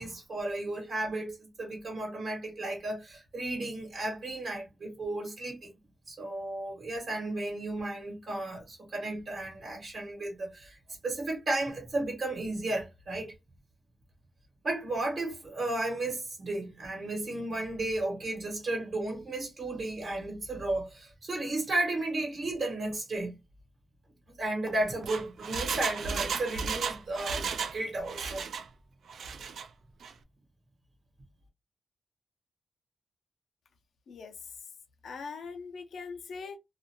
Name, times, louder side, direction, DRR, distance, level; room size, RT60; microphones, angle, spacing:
voice 1, 0.0-5.7 6.1-13.3 14.6-23.3 24.4-28.4, right 2 dB, 60° right, 1.1 m, -34 dB
Engine, 24.8-27.8 28.0-28.7 29.1-29.7 30.0-30.1, right 5 dB, 85° right, 0.3 m, -34 dB
voice 2, 35.0-36.6, left 5 dB, 80° left, 0.5 m, -41 dB
2.4 x 2.2 x 2.8 m
wide cardioid pair, 105°, 0 cm